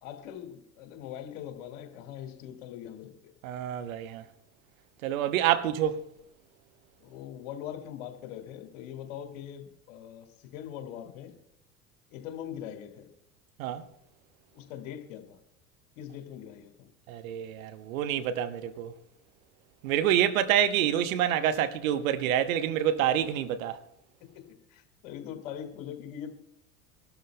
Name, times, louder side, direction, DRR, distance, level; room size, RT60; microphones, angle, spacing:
voice 1, 0.0-3.3 7.0-11.4 12.1-13.1 14.5-15.4 16.0-16.9 24.2-24.4 24.7-26.3, left 10 dB, 60° left, 2.1 m, -42 dB
voice 2, 3.4-4.2 5.0-6.0 13.6-13.8 17.1-18.9 19.8-23.8, right 10 dB, 65° right, 1.1 m, -27 dB
25.0 x 13.0 x 2.2 m
figure-of-eight pair, 70°, 45 cm